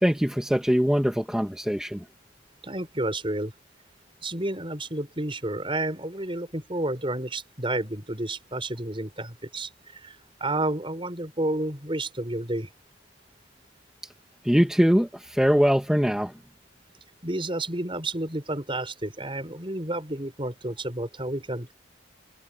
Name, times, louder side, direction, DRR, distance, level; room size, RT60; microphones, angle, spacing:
voice 1, 0.0-2.0 14.4-16.3, equal, 5° right, 1.5 m, -22 dB
voice 2, 2.6-3.5 4.2-12.7 17.2-21.7, right 1 dB, 25° right, 6.0 m, -31 dB
head